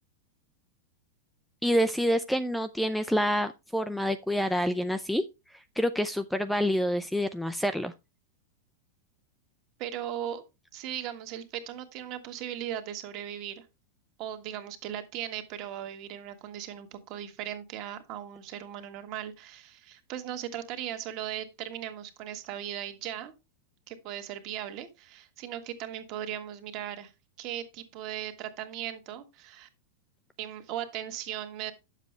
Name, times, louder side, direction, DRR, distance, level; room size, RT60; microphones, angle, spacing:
voice 1, 1.6-7.9, equal, ahead, 0.4 m, -27 dB
voice 2, 9.8-10.4 10.7-13.6 14.2-23.3 23.9-27.1 27.4-29.7 30.4-31.7, right 11 dB, 40° right, 1.5 m, -38 dB
9.9 x 7.4 x 3.3 m
supercardioid pair, 160°, 0 cm